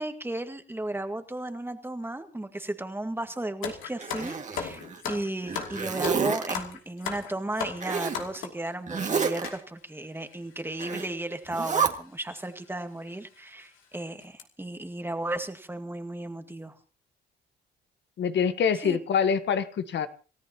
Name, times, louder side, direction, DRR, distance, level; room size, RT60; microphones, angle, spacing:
voice 1, 0.0-16.8 18.7-19.0, right 1 dB, 10° right, 7 dB, 1.9 m, -35 dB
sound 1, 3.6-8.7 9.4-9.6 10.3-10.4 10.6-10.8 11.8-12.0 12.4-12.5 13.1-13.2 13.6-13.8 14.2-14.4, left 7 dB, 90° left, 2.9 m, -36 dB
Zipper (clothing), 4.0-5.0 5.4-6.6 7.8-8.2 8.9-9.5 10.8-11.1 11.5-11.9, right 6 dB, 40° right, 2.1 m, -29 dB
voice 2, 18.2-20.1, left 7 dB, 65° left, 11 dB, 1.4 m, -25 dB
28.5 x 14.0 x 3.0 m, 0.37 s
cardioid pair, 90°, 20 cm